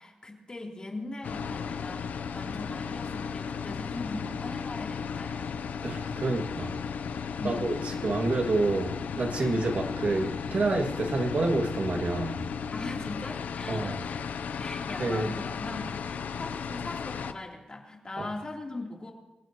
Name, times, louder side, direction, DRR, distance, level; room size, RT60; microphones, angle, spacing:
voice 1, 0.0-5.5 7.4-7.6 12.7-14.2 14.6-19.1, left 2 dB, 35° left, 0 dB, 3.2 m, -40 dB
sound 1, 1.2-17.3, left 6 dB, 90° left, 0.6 m, -35 dB
voice 2, 5.8-6.7 7.4-12.3 13.7-14.0 15.0-15.3 18.2-18.3, right 2 dB, 65° right, 2 dB, 2.2 m, -28 dB
26.5 x 16.0 x 3.0 m, 1.0 s
cardioid pair, 75°, 3 cm